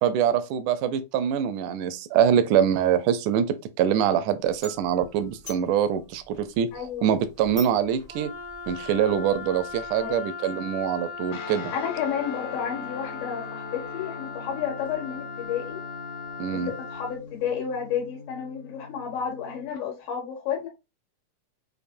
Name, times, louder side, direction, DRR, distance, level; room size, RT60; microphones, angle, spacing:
voice 1, 0.0-6.7 7.0-8.3 8.7-11.7 16.4-16.7, right 9 dB, 80° right, 1.9 m, -24 dB
sound 1, 4.4-10.2, right 2 dB, 30° left, 0.5 m, -46 dB
voice 2, 6.7-7.1 10.0-10.3 11.7-15.8 16.5-20.7, left 8 dB, 90° left, 3.1 m, -31 dB
Wind instrument woodwind instrument, 8.1-17.2, left 5 dB, 60° right, 0.9 m, -38 dB
Guitar, 11.3-19.8, left 5 dB, 70° left, 1.8 m, -41 dB
6.6 x 2.6 x 2.6 m
omnidirectional pair, 3.9 m